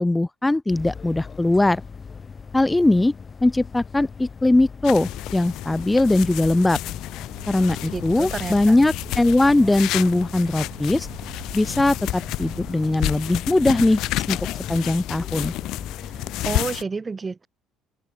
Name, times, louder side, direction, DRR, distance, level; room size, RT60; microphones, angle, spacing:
voice 1, 0.0-1.8 2.5-3.1 3.4-6.8 7.5-11.1 11.5-14.0 14.3-14.4 14.7-15.5, left 2 dB, 10° left, 0.4 m, -20 dB
sound 1, 0.7-16.6, left 5 dB, 30° left, 5.7 m, -40 dB
sound 2, 4.8-16.8, left 17 dB, 55° left, 1.8 m, -31 dB
sound 3, 7.3-12.7, right 25 dB, 60° right, 7.4 m, -44 dB
voice 2, 7.9-8.8 16.4-17.5, right 4 dB, 25° right, 1.5 m, -30 dB
open air
figure-of-eight pair, 55°, 0 cm